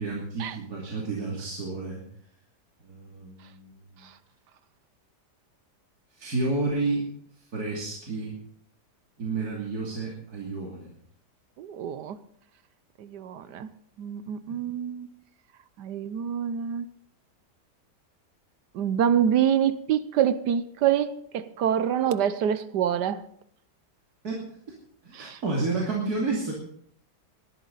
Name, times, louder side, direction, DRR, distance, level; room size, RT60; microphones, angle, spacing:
voice 1, 0.0-2.0 2.8-4.0 6.1-7.1 7.5-8.4 9.2-10.9 14.5-14.6 24.2-24.4 25.0-26.5, right 3 dB, 60° right, 3.3 m, -30 dB
voice 2, 11.6-12.2 13.0-13.7 14.0-15.1 15.8-16.9 18.7-23.2 25.1-25.4, right 9 dB, 75° right, 1.3 m, -26 dB
19.0 x 12.5 x 4.0 m
omnidirectional pair, 1.8 m